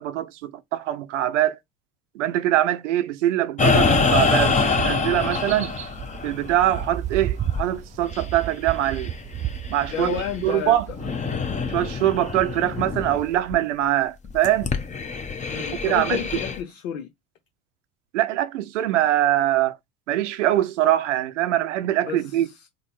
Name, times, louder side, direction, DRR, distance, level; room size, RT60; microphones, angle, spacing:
voice 1, 0.0-1.6 2.1-5.7 6.2-9.1 9.7-10.9 11.7-14.7 15.5-16.2 18.1-19.8 20.1-22.5, right 13 dB, 70° right, 0.6 m, -23 dB
sound 1, 3.6-10.6 10.9-13.2 13.5-13.6 14.2-16.6, left 4 dB, 20° left, 0.8 m, -26 dB
sound 2, 3.8-13.4, right 11 dB, 20° right, 0.3 m, -34 dB
voice 2, 9.8-11.0 15.5-17.1 22.0-22.7, left 9 dB, 70° left, 0.7 m, -31 dB
3.8 x 2.1 x 4.2 m
figure-of-eight pair, 65°, 38 cm